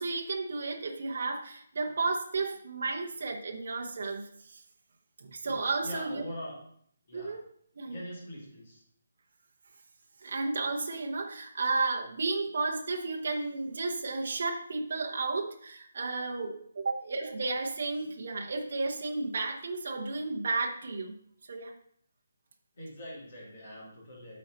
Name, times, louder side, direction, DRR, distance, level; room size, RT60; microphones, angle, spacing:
voice 1, 0.0-4.6 5.2-6.2 7.1-7.4 7.8-8.0 10.2-21.2 21.5-21.7, right 3 dB, 45° right, 1 dB, 0.8 m, -33 dB
voice 2, 5.8-6.6 7.1-7.4 7.8-8.8 22.8-24.4, equal, 35° left, -4 dB, 2.5 m, -43 dB
8.5 x 4.3 x 3.9 m, 0.65 s
hypercardioid pair, 180°, 0 cm